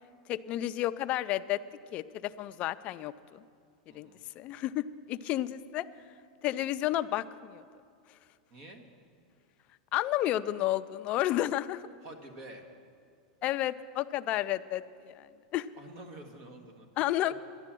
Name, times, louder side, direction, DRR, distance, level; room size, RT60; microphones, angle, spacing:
voice 1, 0.3-1.6 1.9-3.4 3.9-4.1 4.4-5.8 6.4-7.6 9.9-11.8 13.4-15.3 15.5-15.7 17.0-17.3, left 14 dB, 35° left, 12 dB, 0.4 m, -31 dB
voice 2, 3.9-4.2 8.5-8.8 12.0-12.7 15.8-16.9 17.2-17.3, right 2 dB, 45° right, 5 dB, 1.6 m, -48 dB
11.5 x 10.5 x 7.5 m, 2.3 s
supercardioid pair, 150°, 4 cm